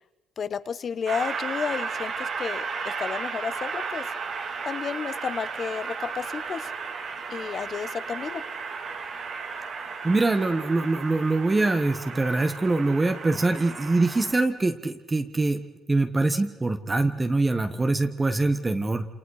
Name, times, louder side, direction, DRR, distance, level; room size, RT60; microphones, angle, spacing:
voice 1, 0.4-4.1 4.6-6.7 7.3-8.4, left 6 dB, 50° left, 13 dB, 1.2 m, -32 dB
Train, 1.1-14.4, right 5 dB, 60° right, 3.0 m, -34 dB
voice 2, 10.0-19.1, right 2 dB, 20° right, 8 dB, 1.3 m, -24 dB
28.0 x 27.5 x 4.9 m, 1.0 s
cardioid pair, 90°, 0 cm